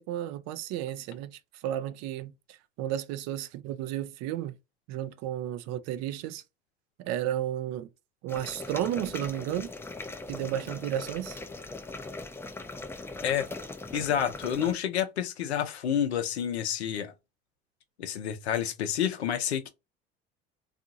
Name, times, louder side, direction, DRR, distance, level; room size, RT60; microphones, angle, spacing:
voice 1, 0.0-2.3 2.8-4.5 4.9-6.4 7.0-7.9 8.2-9.7 10.3-11.4, right 12 dB, 55° right, 0.5 m, -33 dB
sound 1, 8.3-14.8, left 3 dB, 10° left, 0.4 m, -40 dB
voice 2, 13.9-17.1 18.0-19.7, left 9 dB, 85° left, 0.6 m, -29 dB
2.7 x 2.4 x 2.5 m
hypercardioid pair, 70°, 32 cm